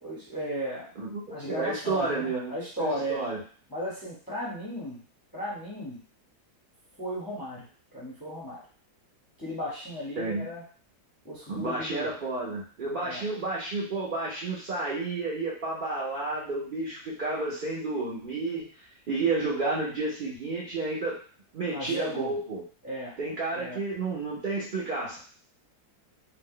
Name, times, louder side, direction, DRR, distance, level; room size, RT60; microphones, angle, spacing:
voice 1, 0.0-0.9 1.3-3.2 3.7-5.0 5.3-6.0 7.0-7.7 7.9-8.6 9.4-10.6 11.2-12.1 13.0-13.2 21.7-22.3 22.8-23.2 23.5-23.8, equal, 20° left, -6 dB, 0.5 m, -35 dB
voice 2, 1.0-3.4 10.2-10.5 11.5-18.6 19.1-21.2 21.5-22.6 23.2-25.2, right 3 dB, 70° right, -6 dB, 0.4 m, -31 dB
2.7 x 2.1 x 3.7 m, 0.42 s
omnidirectional pair, 1.7 m